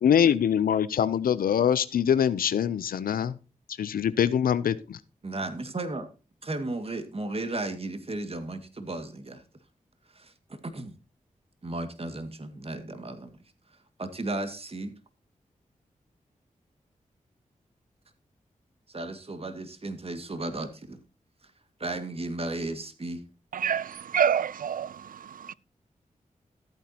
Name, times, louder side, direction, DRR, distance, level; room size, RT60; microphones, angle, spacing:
voice 1, 0.0-3.3 3.8-5.0, left 8 dB, 90° left, 0.6 m, -24 dB
voice 2, 5.2-6.1 6.4-9.4 10.1-11.0 11.6-13.4 14.0-14.9 18.9-21.0 21.4-21.5 21.8-23.2, right 2 dB, 40° right, 2.0 m, -34 dB
voice 3, 23.5-25.5, right 8 dB, 75° right, 0.5 m, -28 dB
13.5 x 9.1 x 2.9 m
cardioid pair, 45°, 14 cm